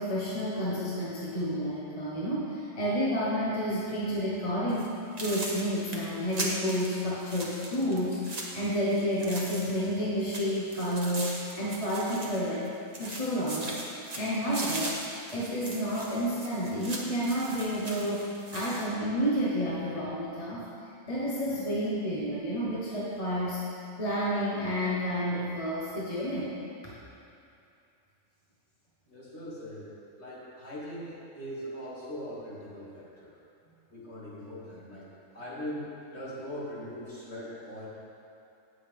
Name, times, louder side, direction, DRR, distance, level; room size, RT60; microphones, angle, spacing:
voice 1, 0.0-12.7 13.0-13.8 14.2-15.0 15.3-20.6 21.1-23.6 24.0-26.5 26.8-26.9, equal, 25° left, -7 dB, 1.3 m, -30 dB
sound 1, 4.7-4.9 5.2-9.9 10.2-12.7 12.9-18.9, right 2 dB, 30° right, 1.1 m, -39 dB
voice 2, 29.1-29.9 30.2-33.3 33.9-35.1 35.3-37.9, equal, 45° left, -8 dB, 2.7 m, -40 dB
17.0 x 6.5 x 3.6 m, 2.6 s
omnidirectional pair, 1.6 m